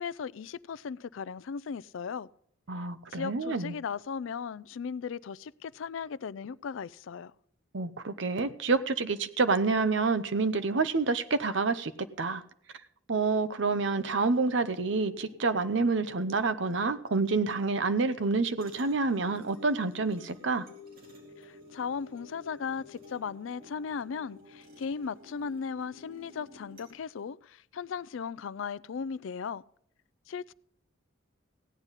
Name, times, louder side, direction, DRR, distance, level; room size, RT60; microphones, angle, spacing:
voice 1, 0.0-2.3 2.8-7.3 21.4-29.6 30.3-30.5, left 6 dB, 75° left, 0.4 m, -37 dB
voice 2, 2.7-3.7 7.7-11.9 12.2-12.4 13.1-20.7, right 4 dB, 65° right, 0.8 m, -28 dB
sound 1, 13.6-26.9, left 2 dB, 45° right, 3.7 m, -53 dB
16.5 x 9.8 x 4.0 m
head